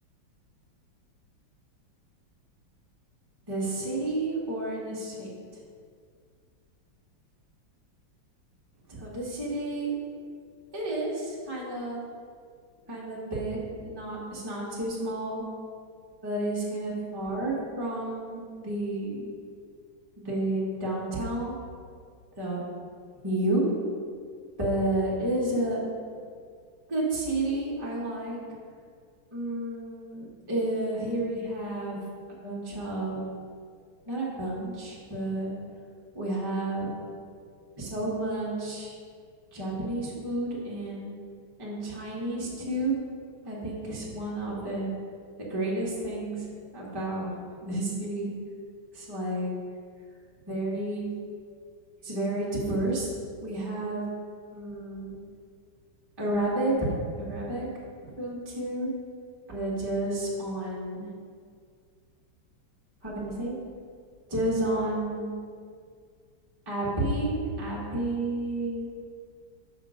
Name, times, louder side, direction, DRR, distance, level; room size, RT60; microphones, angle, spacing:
voice 1, 3.5-5.4 8.9-9.9 10.7-12.0 12.9-15.4 16.2-19.3 20.2-21.5 22.4-22.6 23.2-23.6 24.6-25.8 26.9-28.4 29.3-32.0 32.3-33.2 34.0-35.5 36.1-36.9 37.8-38.9 39.5-41.1 41.6-42.9 43.4-44.9 45.4-46.4 46.7-48.3 48.9-49.5 50.5-51.1 52.0-53.1 53.4-54.0 54.5-55.1 56.2-57.7 58.2-58.9 59.5-61.1 63.0-63.5 64.3-65.4 66.7-68.9, right 1 dB, 15° right, -6 dB, 1.3 m, -31 dB
5.3 x 5.1 x 6.4 m, 2.1 s
omnidirectional pair, 2.3 m